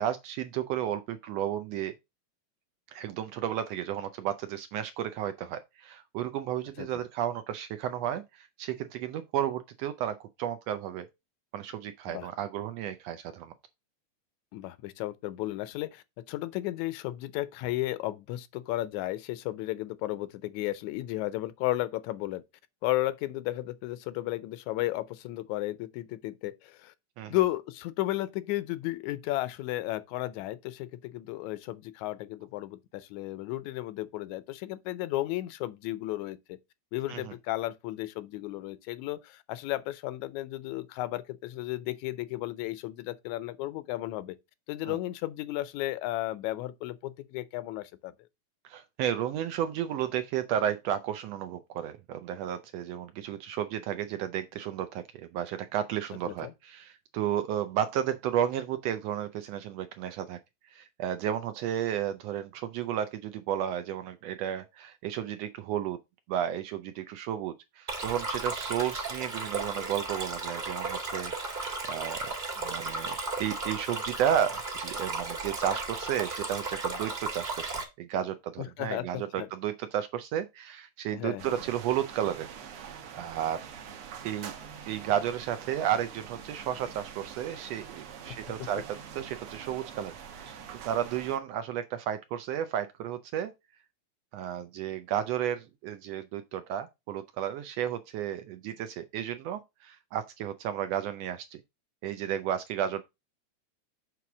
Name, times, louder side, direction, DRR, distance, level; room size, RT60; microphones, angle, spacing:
voice 1, 0.0-1.9 2.9-11.1 11.5-13.5 27.2-27.3 37.1-37.3 44.9-45.0 48.6-55.0 55.3-60.4 60.7-66.0 66.3-82.5 83.1-83.7 84.2-84.5 84.9-93.5 94.3-101.6 102.0-103.0, right 10 dB, 80° right, 1.5 m, -33 dB
voice 2, 14.5-22.4 22.8-26.9 27.3-36.6 36.9-44.4 44.7-48.1 56.3-56.5 78.6-79.5 81.1-81.6 88.3-88.7, left 16 dB, 80° left, 1.9 m, -34 dB
Stream, 67.9-77.8, right 3 dB, 25° right, 1.1 m, -35 dB
sound 1, 81.4-91.4, right 7 dB, 65° right, 1.7 m, -45 dB
6.9 x 3.2 x 5.9 m
omnidirectional pair, 3.4 m